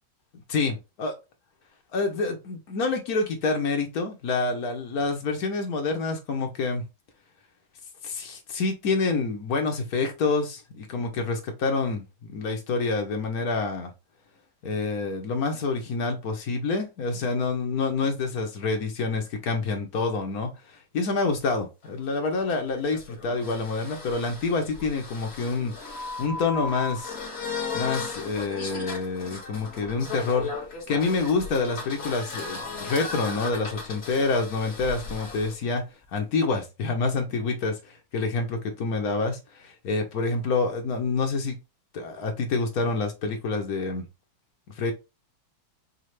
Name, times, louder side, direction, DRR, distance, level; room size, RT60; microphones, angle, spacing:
voice 1, 0.5-1.1 1.9-6.8 8.0-13.9 14.6-27.1 27.7-30.5 30.9-35.8 36.1-41.6 41.9-44.0 44.8-44.9, left 3 dB, 55° left, 1.4 m, -27 dB
sound 1, 21.8-35.5, left 4 dB, 35° left, 1.7 m, -36 dB
5.5 x 2.4 x 3.2 m
omnidirectional pair, 2.1 m